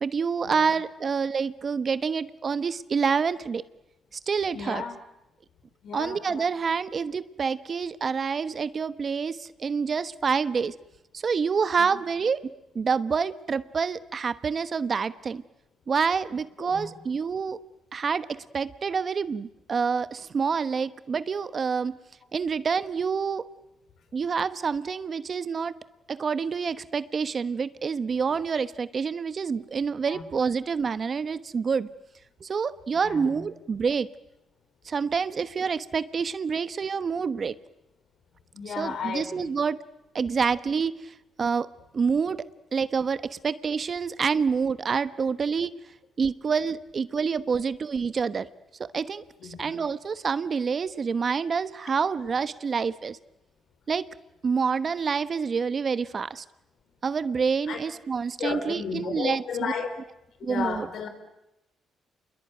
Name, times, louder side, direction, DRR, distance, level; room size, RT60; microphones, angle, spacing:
voice 1, 0.0-3.6 4.1-4.8 5.9-10.7 11.1-12.4 12.7-15.4 15.9-17.6 17.9-22.0 22.3-23.4 24.1-25.7 26.1-31.9 32.4-34.1 34.8-37.5 38.7-39.8 40.1-41.7 41.9-42.5 42.7-45.7 46.2-48.5 48.8-53.2 53.9-54.1 54.4-56.4 57.0-59.7 60.4-60.9, right 5 dB, 45° right, 14 dB, 1.1 m, -27 dB
voice 2, 4.5-4.9 5.8-6.5 11.8-12.0 16.7-16.9 30.1-30.2 32.9-33.4 38.5-39.5 49.4-49.7 57.7-57.8 58.4-59.9 60.4-61.1, left 6 dB, 65° left, 8 dB, 4.8 m, -34 dB
28.0 x 22.0 x 9.2 m, 0.88 s
cardioid pair, 90°, 0 cm